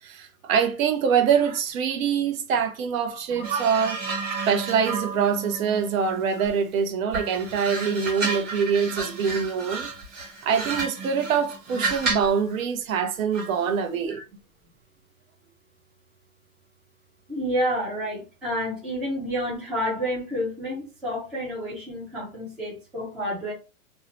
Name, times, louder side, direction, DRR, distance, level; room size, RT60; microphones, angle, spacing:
voice 1, 0.0-4.0 4.5-9.9 10.4-14.2, right 7 dB, 70° right, 0.7 m, -24 dB
sound 1, 3.4-6.7 7.1-12.4 13.3-13.6, right 4 dB, 25° right, 1.0 m, -32 dB
voice 2, 17.3-23.5, equal, ahead, 0.3 m, -29 dB
2.7 x 2.0 x 2.8 m
hypercardioid pair, 140°, 43 cm